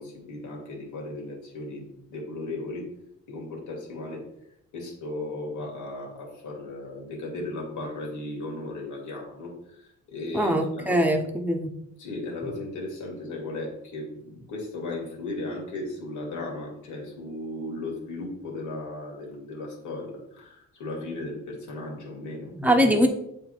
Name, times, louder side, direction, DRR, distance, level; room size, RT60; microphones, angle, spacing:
voice 1, 0.0-2.9 3.3-4.2 4.7-11.2 12.0-22.5, left 2 dB, 80° left, 0 dB, 2.3 m, -36 dB
voice 2, 10.3-11.7 22.6-23.1, equal, 5° right, 3 dB, 1.1 m, -22 dB
7.7 x 3.6 x 4.6 m, 0.79 s
cardioid pair, 90°, 30 cm